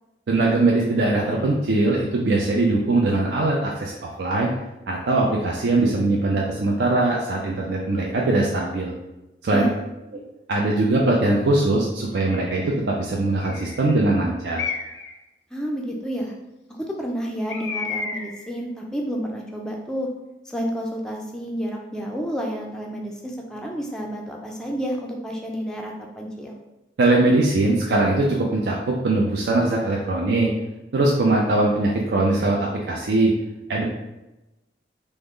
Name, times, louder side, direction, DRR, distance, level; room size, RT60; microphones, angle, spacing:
voice 1, 0.3-4.5 4.9-8.9 9.4-9.7 10.5-14.6 27.0-30.5 30.9-33.3 33.7-33.8, right 2 dB, 70° right, -2 dB, 0.4 m, -21 dB
Bird, 12.1-12.6 13.4-13.9 14.5-15.2 17.5-18.5, left 5 dB, 70° left, 0.4 m, -32 dB
voice 2, 15.5-16.3 16.7-20.1 20.5-26.5, equal, 5° left, -1 dB, 0.3 m, -30 dB
3.5 x 2.1 x 3.6 m, 1.0 s
head